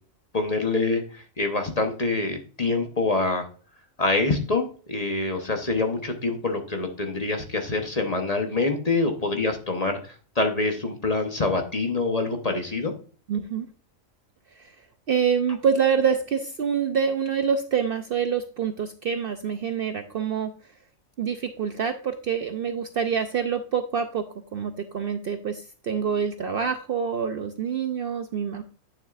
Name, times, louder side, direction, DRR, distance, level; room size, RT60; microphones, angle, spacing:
voice 1, 0.3-3.5 4.0-12.9, left 3 dB, 30° left, 4 dB, 1.0 m, -26 dB
voice 2, 13.3-13.7 14.6-14.7 15.1-20.5 21.2-24.2 24.5-28.6, right 7 dB, 60° right, 8 dB, 0.7 m, -26 dB
9.0 x 7.1 x 2.4 m, 0.39 s
omnidirectional pair, 1.4 m